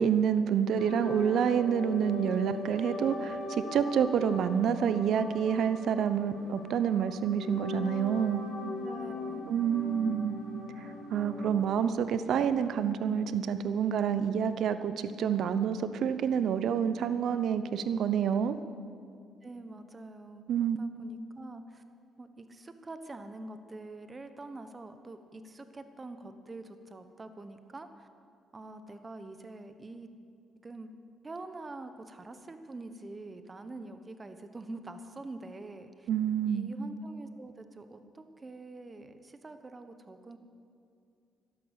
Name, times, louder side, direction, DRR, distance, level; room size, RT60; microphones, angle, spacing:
voice 1, 0.0-8.4 9.5-10.4 10.8-18.6 20.5-20.8 36.1-36.7, right 8 dB, 70° right, 12 dB, 0.8 m, -28 dB
sound 1, 0.8-11.6, left 2 dB, 85° left, 2.7 m, -40 dB
voice 2, 8.8-9.5 19.4-21.8 22.2-28.1 28.5-30.1 30.6-30.9 31.2-36.1 36.5-40.4, right 2 dB, 25° right, 9 dB, 1.2 m, -45 dB
12.5 x 11.5 x 8.2 m, 2.4 s
cardioid pair, 90°, 0 cm